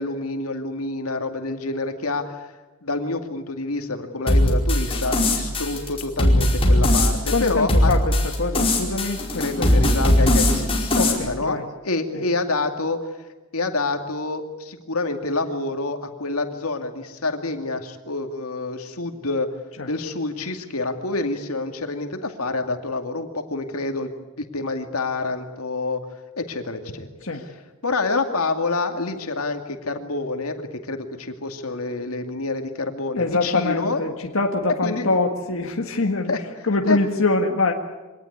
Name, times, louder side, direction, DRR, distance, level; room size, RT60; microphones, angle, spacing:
voice 1, 0.0-2.5 2.8-7.9 9.4-13.1 13.5-19.5 19.9-24.1 24.4-26.0 26.4-27.1 27.8-34.0 34.8-35.2 36.3-36.4 36.9-37.0, left 3 dB, 90° left, 5 dB, 2.4 m, -27 dB
sound 1, 4.3-11.1, left 1 dB, 25° left, 4.9 m, -20 dB
voice 2, 7.3-9.8 11.0-11.6 12.1-12.2 19.8-19.9 27.2-27.4 33.1-36.3 36.6-37.7, left 3 dB, 65° left, 2 dB, 1.8 m, -24 dB
24.5 x 18.5 x 9.6 m, 1.2 s
head